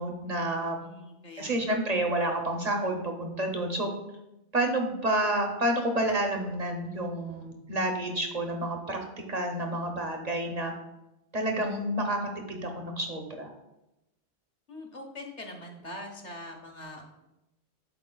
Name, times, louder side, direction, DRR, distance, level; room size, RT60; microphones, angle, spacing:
voice 1, 0.0-0.8 1.4-3.9 4.5-9.0 9.3-10.7 11.3-12.2 12.5-13.5, right 1 dB, 45° right, 3 dB, 0.7 m, -29 dB
voice 2, 0.8-1.6 14.7-17.1, left 1 dB, 40° left, 2 dB, 1.0 m, -43 dB
11.5 x 4.2 x 2.2 m, 0.94 s
omnidirectional pair, 1.2 m